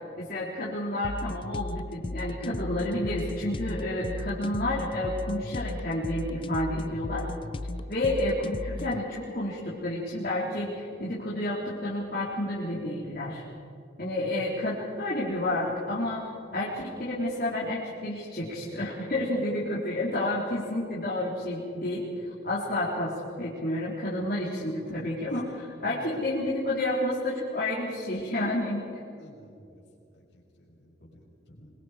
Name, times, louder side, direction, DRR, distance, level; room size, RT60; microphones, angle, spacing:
voice 1, 0.2-7.4 7.9-13.4 14.0-22.1 22.4-29.0, left 1 dB, 50° left, -7 dB, 3.4 m, -30 dB
sound 1, 1.0-9.0, left 2 dB, 25° left, 0.5 m, -36 dB
voice 2, 25.8-26.2 29.1-29.8 30.1-31.7, equal, 70° left, -3 dB, 6.2 m, -52 dB
26.0 x 22.0 x 5.0 m, 2.6 s
head